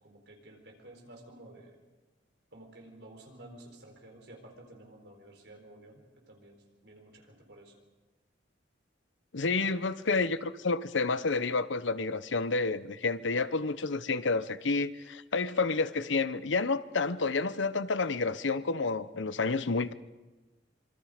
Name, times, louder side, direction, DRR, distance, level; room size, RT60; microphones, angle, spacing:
voice 1, 0.0-1.8 2.5-7.7, right 1 dB, 65° right, 4.4 m, -52 dB
voice 2, 9.3-19.9, left 3 dB, 90° left, 0.9 m, -29 dB
26.0 x 24.5 x 5.1 m
head